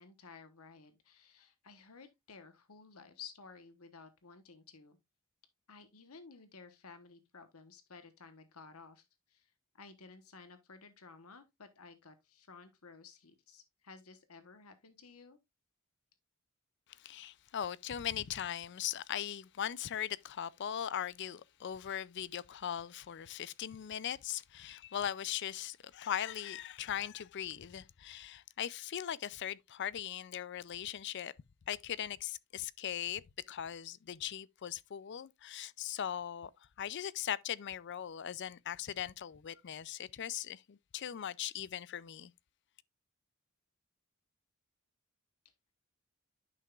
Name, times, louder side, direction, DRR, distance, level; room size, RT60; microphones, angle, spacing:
voice 1, 0.0-5.0 5.7-15.4, left 5 dB, 85° left, 1.2 m, -55 dB
voice 2, 17.0-31.3 31.7-36.5 36.8-42.3, left 10 dB, 55° left, 0.4 m, -39 dB
10.5 x 5.9 x 2.4 m
head